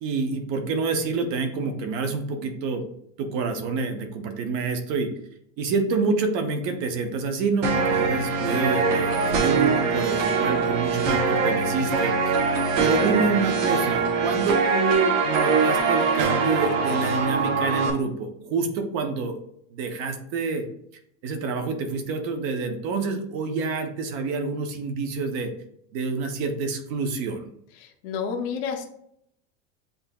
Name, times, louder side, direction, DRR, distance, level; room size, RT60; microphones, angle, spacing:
voice 1, 0.0-2.8 3.2-5.1 5.6-12.5 12.8-19.4 19.7-20.6 21.2-25.5 25.9-27.5, right 4 dB, 35° right, 6 dB, 0.5 m, -27 dB
sound 1, 7.6-17.9, right 4 dB, 75° right, 1.0 m, -23 dB
voice 2, 27.8-28.8, left 6 dB, 35° left, 2 dB, 0.5 m, -30 dB
7.7 x 2.7 x 2.2 m, 0.73 s
supercardioid pair, 170°, 37 cm